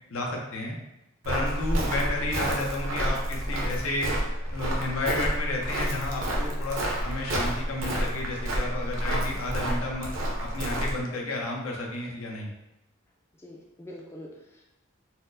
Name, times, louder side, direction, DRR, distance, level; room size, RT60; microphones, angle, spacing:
voice 1, 0.1-0.8 1.2-4.1 4.5-10.1 10.5-12.5, left 2 dB, 80° left, -1 dB, 0.6 m, -31 dB
Walk footsteps, 1.2-11.0, right 1 dB, 65° right, 0.6 m, -29 dB
voice 2, 13.4-14.6, left 1 dB, 10° left, -2 dB, 0.3 m, -45 dB
4.2 x 2.0 x 2.6 m, 0.91 s
head